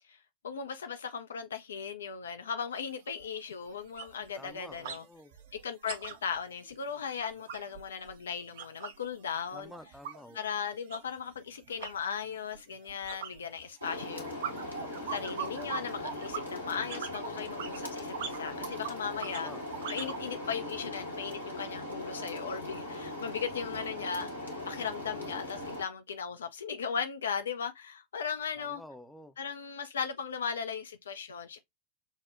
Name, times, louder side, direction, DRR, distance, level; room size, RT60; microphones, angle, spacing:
voice 1, 0.4-5.0 5.6-9.7 10.3-14.6 15.1-19.5 19.9-28.8 29.4-31.6, left 6 dB, 65° left, 0.3 m, -37 dB
sound 1, 2.7-2.8 3.2-3.4 3.7-5.0 5.3-9.1 9.4-20.2, right 8 dB, 55° right, 0.5 m, -42 dB
voice 2, 4.4-5.3 9.5-10.4 19.2-19.6 28.6-29.3, left 1 dB, ahead, 0.5 m, -49 dB
sound 2, 13.8-25.8, left 1 dB, 90° left, 1.4 m, -40 dB
6.2 x 2.1 x 2.5 m
figure-of-eight pair, 90°, 0 cm